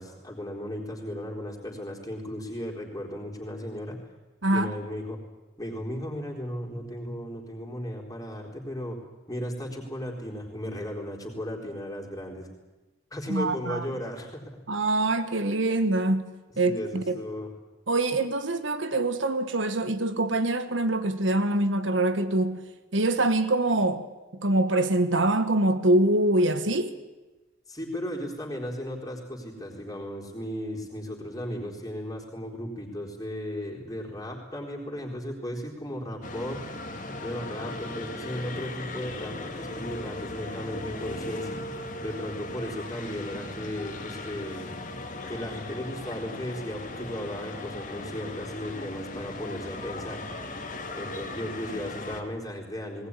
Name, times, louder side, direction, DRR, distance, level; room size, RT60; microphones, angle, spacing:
voice 1, 0.0-4.0 4.5-5.2 5.6-9.0 9.3-12.5 13.1-14.6 16.6-17.5 27.7-36.6 37.2-41.5 42.0-44.7 45.3-50.2 50.9-53.1, equal, 20° left, 4.1 m, -35 dB
voice 2, 4.4-4.7 13.3-13.8 14.7-17.2 17.9-22.7 22.9-24.1 24.4-27.0, right 2 dB, 70° right, 1.4 m, -24 dB
sound 1, 36.2-52.2, left 2 dB, 40° left, 2.3 m, -38 dB
19.5 x 19.0 x 9.8 m
head